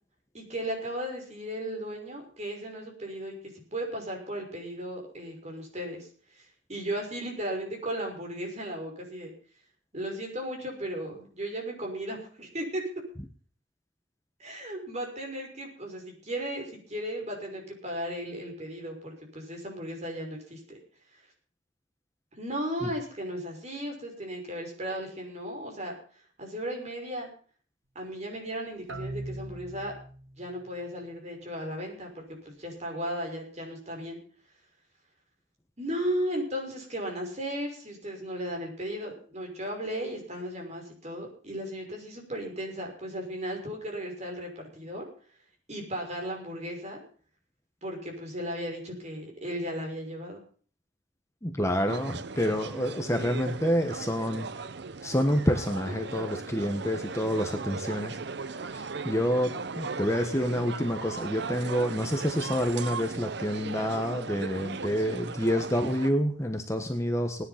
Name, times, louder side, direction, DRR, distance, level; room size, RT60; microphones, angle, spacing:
voice 1, 0.3-3.3 3.7-9.3 9.9-12.9 14.4-20.8 22.3-26.0 26.4-27.3 27.9-29.9 30.4-34.2 35.8-45.0 45.7-47.0 47.8-50.4 54.2-54.3 55.9-56.0, equal, 35° right, 1 dB, 5.9 m, -35 dB
sound 1, 28.9-30.6, right 1 dB, 80° right, 1.7 m, -40 dB
voice 2, 51.4-54.5 55.0-58.2 58.7-67.4, equal, 15° left, 5 dB, 1.3 m, -28 dB
sound 2, 51.9-66.1, right 4 dB, 60° right, 0.8 m, -37 dB
18.5 x 10.5 x 5.9 m, 0.44 s
head